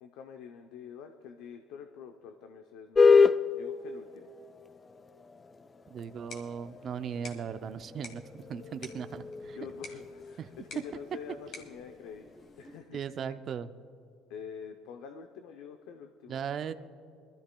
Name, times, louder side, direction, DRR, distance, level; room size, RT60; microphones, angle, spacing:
voice 1, 0.0-4.3 9.5-12.3 12.6-13.0 14.3-16.4, left 7 dB, 80° left, 6 dB, 0.6 m, -46 dB
sound 1, 3.0-12.8, left 5 dB, 25° left, 0.3 m, -30 dB
voice 2, 5.9-9.6 10.4-10.5 12.9-13.8 16.3-16.7, right 7 dB, 45° right, 10 dB, 0.4 m, -38 dB
sound 2, 6.0-13.0, left 3 dB, 55° left, 1.9 m, -52 dB
22.0 x 13.0 x 2.2 m, 2.4 s
supercardioid pair, 100°, 0 cm